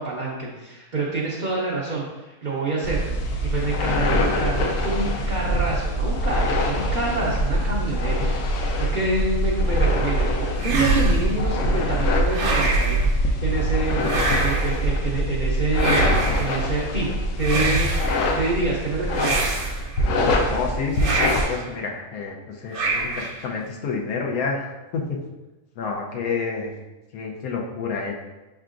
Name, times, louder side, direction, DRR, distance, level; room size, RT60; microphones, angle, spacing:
voice 1, 0.0-14.0 14.4-16.1 16.4-17.9 18.3-19.5, right 2 dB, 50° right, -4 dB, 0.5 m, -27 dB
sound 1, 2.8-21.4, equal, 65° left, 0.9 m, -23 dB
sound 2, 10.6-11.4 12.3-13.1 14.0-14.8 15.8-16.6 17.4-18.2 19.1-20.0 21.0-21.6 22.7-23.4, right 3 dB, 80° right, 1.2 m, -25 dB
voice 2, 20.5-25.2 25.8-26.7 27.1-28.1, left 4 dB, 85° left, 1 dB, 1.2 m, -29 dB
5.6 x 3.5 x 2.5 m, 1.1 s
omnidirectional pair, 1.5 m